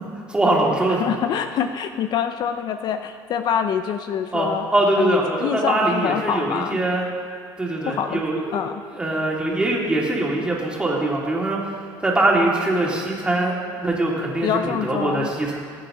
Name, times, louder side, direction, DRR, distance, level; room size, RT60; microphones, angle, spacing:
voice 1, 0.3-1.0 4.3-7.0 7.6-8.6 9.0-11.6 12.0-15.6, right 2 dB, 10° right, -3 dB, 2.5 m, -22 dB
voice 2, 0.9-4.7 5.0-6.8 7.8-8.2 8.5-8.8 14.4-15.3, left 8 dB, 50° left, 8 dB, 0.5 m, -25 dB
20.0 x 8.5 x 3.8 m, 2.1 s
cardioid pair, 125°, 9 cm